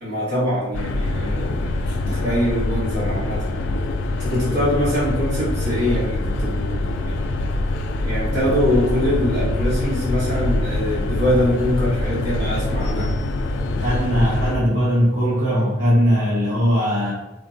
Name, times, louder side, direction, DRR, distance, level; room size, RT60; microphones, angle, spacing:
voice 1, 0.0-3.5 4.1-7.3 8.0-13.2, equal, 55° right, -9 dB, 1.5 m, -23 dB
sound 1, 0.7-14.6, left 2 dB, 60° left, 0.3 m, -24 dB
voice 2, 13.8-17.1, equal, 70° right, -10 dB, 1.1 m, -19 dB
3.6 x 2.2 x 2.6 m, 1.0 s
head